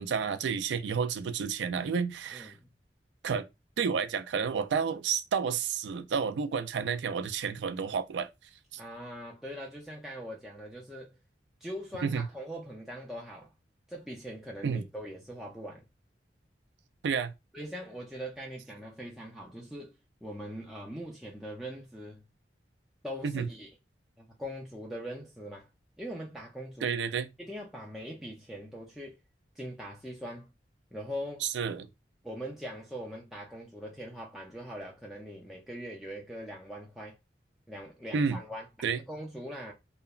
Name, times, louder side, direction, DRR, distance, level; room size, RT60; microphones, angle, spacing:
voice 1, 0.0-2.5 3.2-3.5 3.8-8.3 12.0-12.3 14.6-14.8 17.0-17.3 23.2-23.5 26.8-27.3 31.4-31.9 38.1-38.4 38.8-39.0, right 6 dB, 85° right, 0.3 m, -30 dB
voice 2, 2.3-2.7 8.8-11.1 11.6-13.5 13.9-15.8 17.5-22.2 23.0-23.7 24.2-25.7 26.0-26.9 27.4-29.2 29.6-30.5 30.9-31.4 32.2-37.2 37.7-38.7 39.1-39.7, equal, ahead, 0.3 m, -41 dB
2.8 x 2.1 x 2.3 m
head